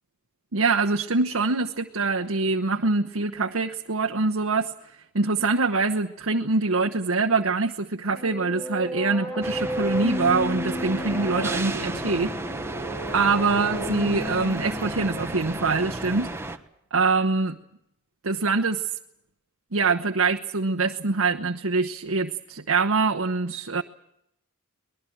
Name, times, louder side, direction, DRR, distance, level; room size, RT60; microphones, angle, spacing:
voice 1, 0.5-12.3 13.1-16.3 16.9-17.6 18.2-19.0 19.7-23.8, right 3 dB, 65° right, 3 dB, 1.0 m, -24 dB
sound 1, 8.1-15.9, equal, 15° left, 2.2 m, -33 dB
sound 2, 9.4-16.6, right 2 dB, 10° right, 1.3 m, -33 dB
24.0 x 20.5 x 7.8 m, 0.79 s
head